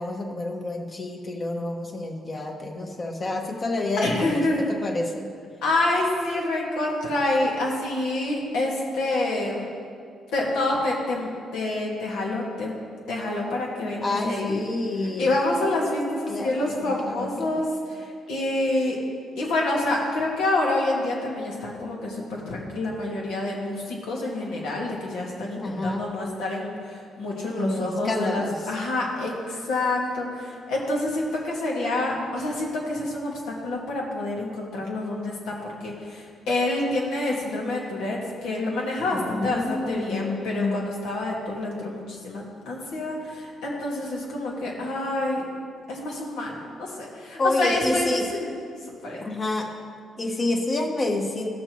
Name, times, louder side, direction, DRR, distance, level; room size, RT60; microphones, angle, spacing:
voice 1, 0.0-4.4 4.7-5.3 14.0-15.3 16.3-17.6 25.6-26.1 27.5-28.6 39.1-40.9 47.4-48.3 49.2-49.7 50.2-51.5, left 2 dB, 35° left, 2 dB, 1.2 m, -28 dB
voice 2, 4.0-4.7 5.6-9.7 10.3-12.7 13.1-14.6 15.2-19.0 19.3-45.4 45.9-48.5 48.8-49.2, left 2 dB, 90° left, -2 dB, 1.8 m, -27 dB
14.5 x 6.5 x 3.1 m, 2.2 s
cardioid pair, 90°, 0 cm